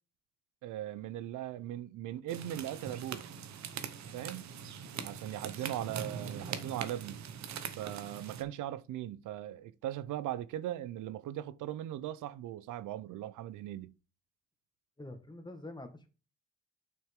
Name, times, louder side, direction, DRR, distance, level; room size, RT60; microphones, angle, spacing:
voice 1, 0.6-3.2 4.1-4.5 5.0-7.2 7.8-13.9, right 12 dB, 80° right, 0.6 m, -39 dB
sound 1, 2.3-8.4, right 7 dB, 65° right, 1.2 m, -42 dB
voice 2, 15.0-16.1, left 2 dB, 15° left, 1.8 m, -46 dB
7.3 x 6.1 x 3.6 m
cardioid pair, 90°, 30 cm